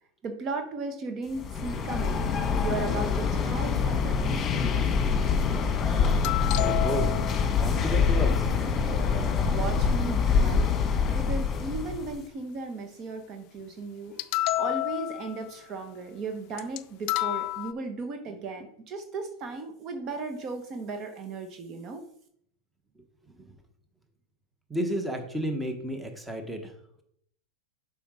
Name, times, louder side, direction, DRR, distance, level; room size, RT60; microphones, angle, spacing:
voice 1, 0.2-2.3 2.6-4.4 9.4-10.6 11.1-22.0, right 3 dB, 35° right, 6 dB, 1.1 m, -36 dB
sound 1, 1.3-12.2, left 5 dB, 30° left, 1.5 m, -25 dB
sound 2, 6.2-7.6 14.2-15.5 16.6-16.8 17.1-17.7, left 17 dB, 50° left, 0.4 m, -29 dB
voice 2, 6.6-7.1 7.5-8.5 23.4-23.5 24.7-26.7, equal, 5° right, 5 dB, 1.3 m, -32 dB
7.0 x 5.0 x 4.9 m, 0.68 s
hypercardioid pair, 115°, 0 cm